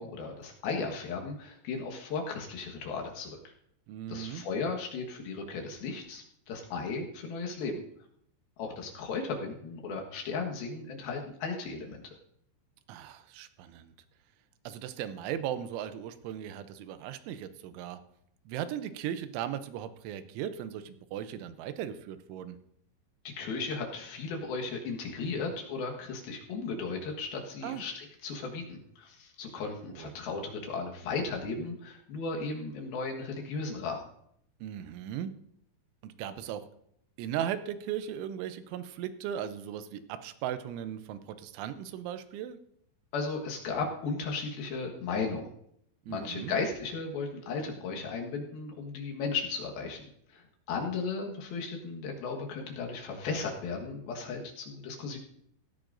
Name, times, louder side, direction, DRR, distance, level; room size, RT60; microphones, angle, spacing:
voice 1, 0.0-3.4 4.1-7.8 8.6-12.0 23.2-34.0 43.1-45.5 46.1-50.0 50.3-55.2, left 4 dB, 65° left, 1 dB, 3.0 m, -35 dB
voice 2, 3.9-4.4 12.9-13.9 14.7-18.0 18.5-22.6 27.6-27.8 30.0-30.1 34.6-35.3 36.0-36.6 37.2-42.6 46.1-46.5, right 10 dB, 90° right, 11 dB, 3.2 m, -37 dB
16.5 x 13.5 x 2.6 m, 0.71 s
omnidirectional pair, 5.3 m